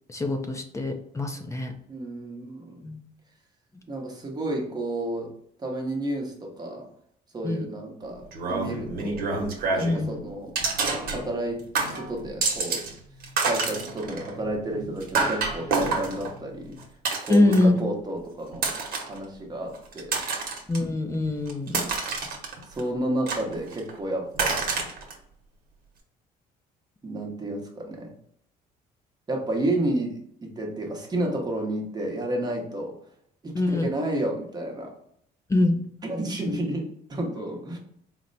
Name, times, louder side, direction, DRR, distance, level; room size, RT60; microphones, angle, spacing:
voice 1, 0.1-1.7 2.8-3.0 7.4-7.7 9.8-10.2 17.3-17.8 20.7-21.8 33.5-33.9 35.5-35.8, left 2 dB, 15° left, 5 dB, 0.5 m, -24 dB
voice 2, 1.9-2.8 3.9-5.3 5.6-6.9 7.3-9.3 9.7-10.6 11.1-12.9 13.4-16.8 17.2-18.7 19.1-20.2 22.7-24.6 27.0-28.1 29.3-33.0 33.4-34.9 36.0-37.8, right 1 dB, 25° right, 1 dB, 0.9 m, -31 dB
sound 1, 8.3-10.1 10.6-11.5 11.7-12.9 13.2-17.8 18.5-19.2 19.7-20.8 21.3-22.8 23.3-23.9 24.3-25.1, right 4 dB, 60° right, 1.0 m, -28 dB
4.3 x 2.1 x 3.9 m, 0.68 s
cardioid pair, 110°, 17 cm